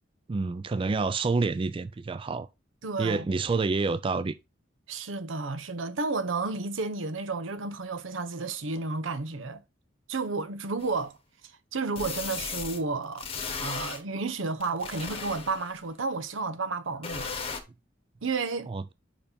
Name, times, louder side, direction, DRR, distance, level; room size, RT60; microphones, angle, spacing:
voice 1, 0.3-2.5 3.0-4.3 18.7-18.9, right 4 dB, 25° right, 0.3 m, -28 dB
voice 2, 2.8-3.2 4.9-9.6 10.1-11.2 11.7-13.3 13.6-17.3 18.2-18.7, right 3 dB, 85° right, 0.8 m, -32 dB
sound 1, 10.8-10.9 11.9-12.8 13.2-14.0 14.6-15.7 17.0-17.6, left 5 dB, 30° left, 1.0 m, -35 dB
5.3 x 4.9 x 5.1 m
head